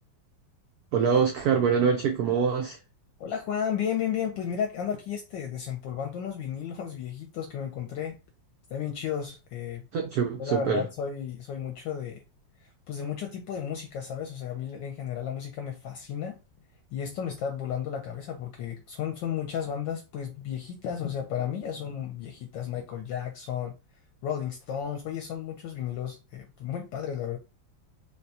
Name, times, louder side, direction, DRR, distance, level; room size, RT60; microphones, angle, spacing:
voice 1, 0.9-2.8 9.9-10.9, right 6 dB, 90° right, 0.8 m, -24 dB
voice 2, 3.2-8.2 8.7-9.8 10.4-12.2 12.9-16.4 16.9-23.7 24.2-27.4, left 8 dB, 75° left, 1.2 m, -33 dB
3.8 x 2.2 x 2.7 m
omnidirectional pair, 2.2 m